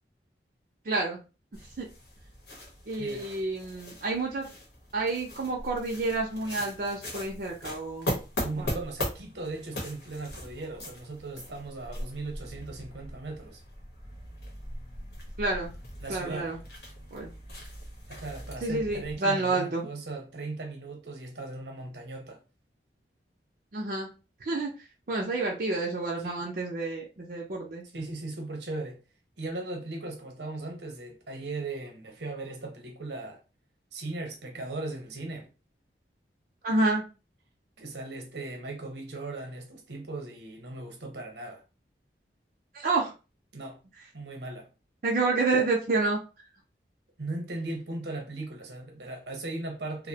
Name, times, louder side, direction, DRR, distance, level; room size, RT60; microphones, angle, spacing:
voice 1, 0.9-1.2 1.8-1.9 2.9-4.5 4.9-8.1 8.6-8.8 15.4-15.7 16.1-16.6 17.1-17.3 18.6-19.9 23.7-24.1 24.4-24.7 25.1-27.8 36.6-37.0 42.7-43.1 45.0-46.2, right 3 dB, 50° right, 0.5 m, -29 dB
sound 1, 1.5-19.2, left 1 dB, 70° left, 0.9 m, -40 dB
voice 2, 8.4-13.6 16.0-16.6 18.1-22.4 26.2-26.4 27.9-29.0 29.4-33.4 33.9-35.5 37.8-41.6 43.5-43.8 44.1-44.7 47.2-50.1, right 2 dB, 80° right, 0.8 m, -38 dB
2.6 x 2.0 x 2.7 m
head